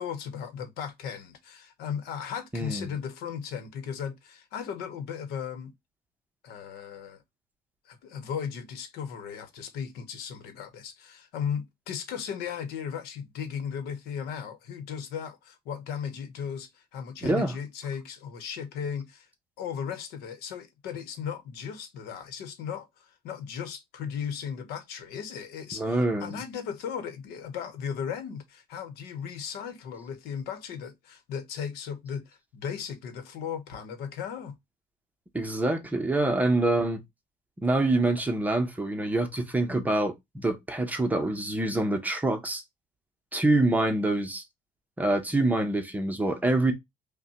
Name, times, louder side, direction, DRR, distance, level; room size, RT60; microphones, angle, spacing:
voice 1, 0.0-5.7 6.4-7.2 7.8-19.3 19.6-34.6, left 7 dB, 85° left, 0.9 m, -36 dB
voice 2, 2.5-2.9 17.2-17.5 25.8-26.4 35.3-37.0 37.6-42.6 43.3-44.4 45.0-46.7, right 2 dB, 10° right, 0.7 m, -26 dB
5.4 x 2.2 x 2.8 m
cardioid pair, 150°, 16 cm